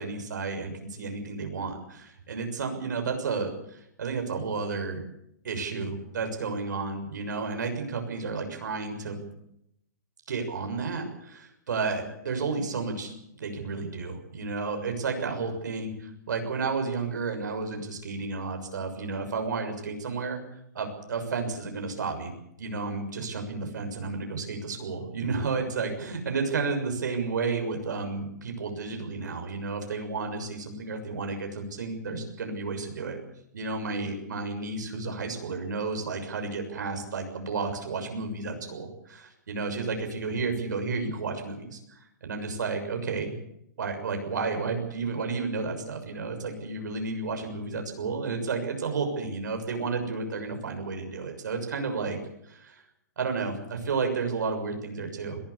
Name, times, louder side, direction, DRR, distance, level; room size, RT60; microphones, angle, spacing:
voice 1, 0.0-5.0 5.4-9.3 10.3-13.1 13.4-20.4 20.7-22.3 22.6-33.2 33.5-43.4 43.8-52.2 52.5-52.8 53.2-55.4, right 4 dB, 75° right, 5 dB, 6.7 m, -32 dB
21.5 x 16.0 x 8.5 m, 0.76 s
hypercardioid pair, 160°, 10 cm